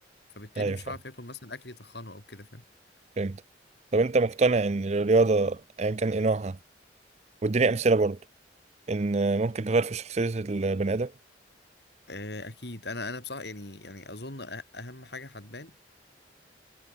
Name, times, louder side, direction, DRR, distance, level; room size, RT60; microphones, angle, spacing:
voice 1, 0.3-2.6 12.1-15.8, left 2 dB, 60° left, 4.8 m, -40 dB
voice 2, 3.9-6.6 7.4-8.2 8.9-11.1, right 3 dB, 35° right, 0.5 m, -25 dB
head